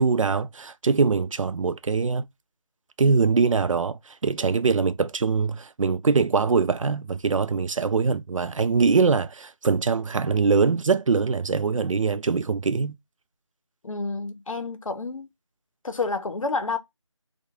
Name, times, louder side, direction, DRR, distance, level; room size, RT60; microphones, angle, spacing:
voice 1, 0.0-2.3 3.0-12.9, right 4 dB, 75° right, 0.4 m, -23 dB
voice 2, 13.8-15.3 15.8-16.8, left 3 dB, 90° left, 0.6 m, -29 dB
2.2 x 2.1 x 3.0 m
figure-of-eight pair, 175°, 17 cm